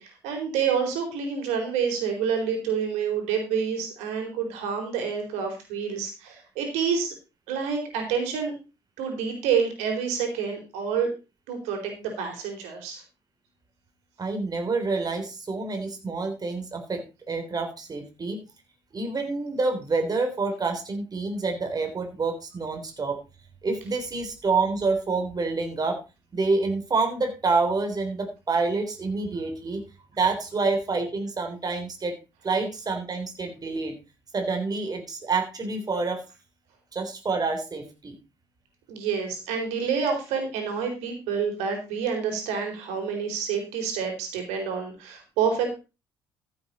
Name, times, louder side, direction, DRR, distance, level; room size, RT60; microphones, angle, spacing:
voice 1, 0.0-7.1 7.5-8.5 9.0-11.1 11.5-13.0 38.9-45.8, right 6 dB, 70° right, 4 dB, 4.2 m, -28 dB
voice 2, 14.2-18.4 18.9-23.2 23.6-26.0 26.3-29.8 30.2-32.2 32.4-34.0 34.3-36.2 36.9-38.2, right 3 dB, 30° right, 5 dB, 3.7 m, -27 dB
14.5 x 8.0 x 4.2 m, 0.29 s
figure-of-eight pair, 50°, 12 cm